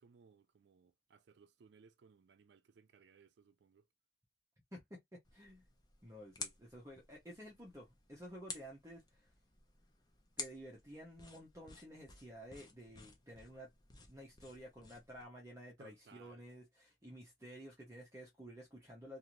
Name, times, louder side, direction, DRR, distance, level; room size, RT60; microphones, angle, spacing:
voice 1, 0.0-3.9 15.8-16.4, right 5 dB, 70° right, 0.4 m, -64 dB
voice 2, 4.7-5.6 6.0-9.3 10.4-13.7 14.0-19.2, equal, 15° right, 0.8 m, -53 dB
sound 1, 5.2-15.3, left 4 dB, 20° left, 0.6 m, -53 dB
2.5 x 2.5 x 2.9 m
head